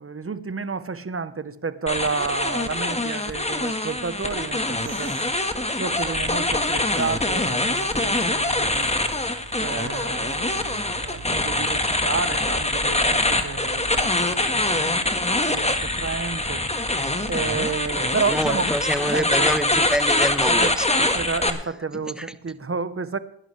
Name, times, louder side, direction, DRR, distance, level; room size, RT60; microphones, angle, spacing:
voice 1, 0.0-5.1 5.8-8.9 9.6-16.6 17.3-18.6 19.1-19.5 20.5-20.7 21.1-23.2, right 5 dB, 30° right, 1.1 m, -31 dB
sound 1, 1.9-21.5, left 2 dB, 15° left, 1.6 m, -24 dB
sound 2, 4.0-20.3, right 3 dB, 55° right, 3.4 m, -43 dB
voice 2, 18.3-21.2 22.2-22.3, equal, ahead, 1.1 m, -26 dB
19.5 x 11.0 x 3.4 m
cardioid pair, 65°, 46 cm